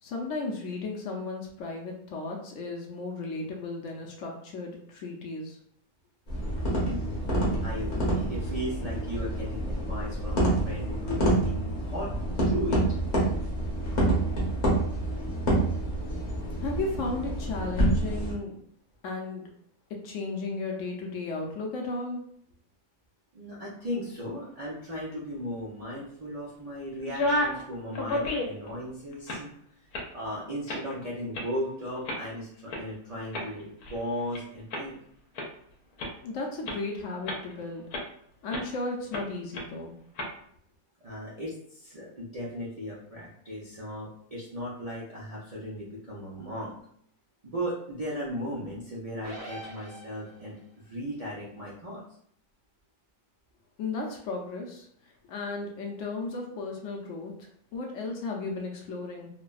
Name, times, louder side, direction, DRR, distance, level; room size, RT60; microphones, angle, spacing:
voice 1, 0.0-5.6 16.6-18.6 19.0-19.4 20.0-22.2 36.2-37.9 38.4-39.9 53.8-54.9 55.3-59.3, left 3 dB, 65° left, 0 dB, 0.8 m, -35 dB
sound 1, 6.3-18.3, right 1 dB, 40° left, 0.7 m, -27 dB
voice 2, 6.8-12.1 12.4-12.8 23.3-29.5 30.1-34.9 41.0-46.7 47.4-50.6 50.9-52.0, equal, 75° right, -6 dB, 0.3 m, -36 dB
sound 2, 27.0-27.6 27.9-28.7 29.1-29.5 29.9-30.1 30.7-30.9 31.3-31.4 32.0-32.2 32.7-32.8 33.3-34.4 34.7-34.8 35.3-35.5 36.0-36.1 36.7-36.8 37.3-37.5 37.9-38.0 38.5-38.7 39.1-39.2 39.5-39.6 40.2-40.3, left 1 dB, 85° left, 1.1 m, -31 dB
sound 3, 49.2-50.6, right 1 dB, 20° right, 0.9 m, -43 dB
3.2 x 2.1 x 2.3 m, 0.66 s
omnidirectional pair, 1.6 m